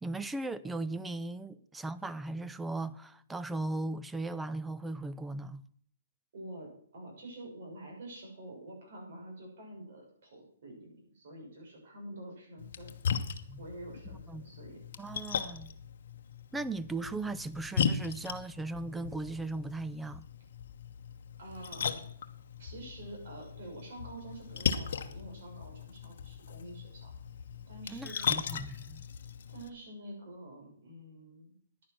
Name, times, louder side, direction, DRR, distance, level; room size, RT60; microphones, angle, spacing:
voice 1, 0.0-5.6 13.5-13.6 14.3-14.4 15.0-15.8 16.5-20.3 27.9-29.0, right 2 dB, 5° right, 0.4 m, -37 dB
voice 2, 6.3-12.9 13.6-14.8 21.4-22.0 22.6-27.1 27.7-28.2 29.5-31.6, right 1 dB, 50° right, 6.2 m, -47 dB
Splash splatter, 12.6-29.7, left 7 dB, 55° left, 1.0 m, -38 dB
10.5 x 9.8 x 6.0 m
hypercardioid pair, 165°, 0 cm